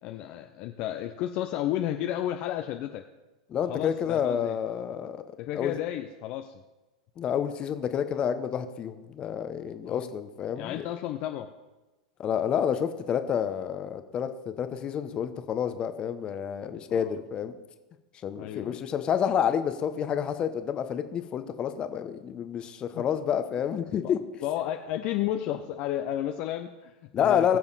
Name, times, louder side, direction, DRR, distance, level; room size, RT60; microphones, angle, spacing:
voice 1, 0.0-3.1 3.7-4.6 5.4-6.6 9.8-10.1 10.6-11.5 16.9-17.2 18.4-18.8 23.0-23.1 23.5-23.6 23.9-24.1 24.4-27.6, left 12 dB, 45° left, 6 dB, 0.7 m, -32 dB
voice 2, 3.5-5.2 5.5-5.7 7.2-10.8 12.2-17.6 18.2-24.2 27.1-27.6, left 8 dB, 30° left, 9 dB, 1.0 m, -29 dB
20.5 x 7.0 x 4.1 m, 1.1 s
hypercardioid pair, 95°, 3 cm